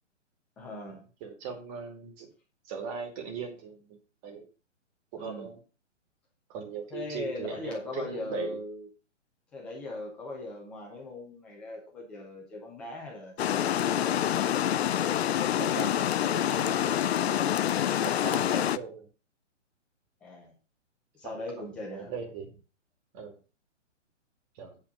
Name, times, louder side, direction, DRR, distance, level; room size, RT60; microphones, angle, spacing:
voice 1, 0.6-1.0 5.2-5.5 6.9-8.9 9.5-14.1 20.2-20.5 21.1-22.1, left 2 dB, 5° left, 0 dB, 0.4 m, -39 dB
voice 2, 1.2-2.3 2.7-4.0 4.2-4.5 5.1-5.6 6.5-8.6 15.6-17.0 17.3-17.5 18.0-19.1 21.2-21.3 21.9-22.6 23.1-23.4 24.6-24.8, right 6 dB, 30° right, 3 dB, 2.6 m, -39 dB
Water, 13.4-18.8, left 10 dB, 60° left, 0.6 m, -27 dB
8.6 x 4.3 x 6.4 m, 0.34 s
hypercardioid pair, 145°, 37 cm